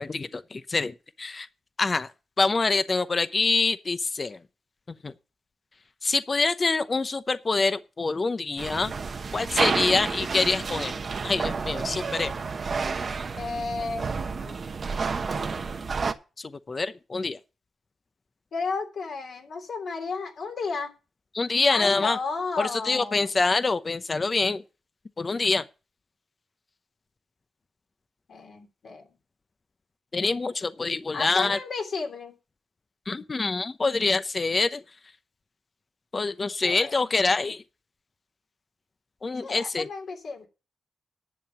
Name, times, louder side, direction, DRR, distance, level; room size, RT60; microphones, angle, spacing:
voice 1, 0.0-1.5 1.8-2.1 2.4-4.4 5.0-5.1 6.0-8.9 9.3-10.9 11.2-12.3 16.4-17.4 21.3-22.2 22.6-24.6 25.2-25.6 30.1-31.6 33.1-34.8 36.1-37.6 39.2-39.9, left 3 dB, 40° left, 0.8 m, -25 dB
sound 1, 8.6-16.1, right 5 dB, 55° right, 1.1 m, -30 dB
voice 2, 13.3-14.5 18.5-20.9 21.7-23.3 28.3-29.1 31.1-32.3 36.6-37.0 39.4-40.5, left 4 dB, 70° left, 3.3 m, -33 dB
11.0 x 7.0 x 7.1 m
supercardioid pair, 50°, 0 cm